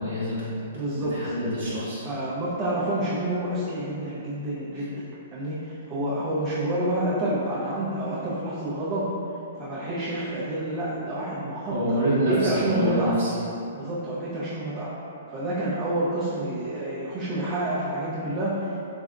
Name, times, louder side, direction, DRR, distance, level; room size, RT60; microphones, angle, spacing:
voice 1, 0.0-2.1 4.7-4.8 11.7-13.3, equal, 75° right, -10 dB, 0.9 m, -27 dB
voice 2, 0.7-1.3 2.0-5.0 5.3-9.1 9.6-13.1 13.7-14.9 15.3-18.7, right 1 dB, 30° right, -10 dB, 0.5 m, -28 dB
3.4 x 2.2 x 2.4 m, 2.8 s
hypercardioid pair, 130°, 0 cm